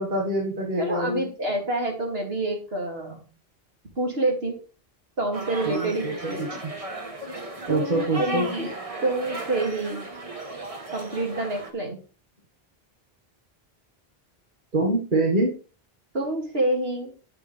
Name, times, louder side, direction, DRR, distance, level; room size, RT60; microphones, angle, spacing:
voice 1, 0.0-1.2 5.6-6.5 7.7-8.5 14.7-15.6, right 2 dB, 50° right, -1 dB, 1.9 m, -25 dB
voice 2, 0.8-3.3 4.0-4.6 5.2-6.5 7.7-8.7 9.0-10.1 10.9-12.0 16.1-17.1, right 2 dB, 75° right, 0 dB, 3.1 m, -27 dB
sound 1, 5.3-11.7, right 2 dB, 35° right, 1.5 m, -35 dB
11.0 x 7.6 x 3.5 m, 0.36 s
omnidirectional pair, 1.0 m